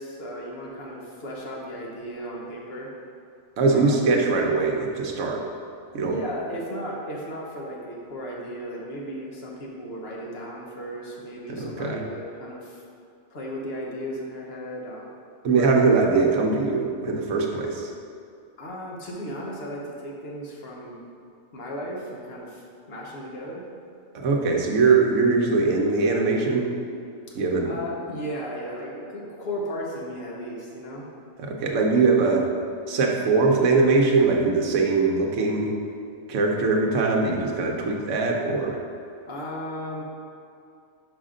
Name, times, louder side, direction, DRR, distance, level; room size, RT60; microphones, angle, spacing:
voice 1, 0.0-2.9 3.7-4.0 6.0-12.8 13.3-15.1 15.5-15.7 18.6-21.0 21.5-23.6 27.3-27.4 27.6-31.1 39.3-40.0, equal, 50° left, -3 dB, 1.1 m, -35 dB
voice 2, 3.6-5.5 5.9-6.2 11.5-12.0 15.4-17.9 24.1-26.7 27.3-27.8 31.4-32.5 32.9-35.7 36.3-38.8, right 4 dB, 65° right, 0 dB, 1.1 m, -21 dB
5.2 x 4.9 x 3.7 m, 2.5 s
omnidirectional pair, 1.4 m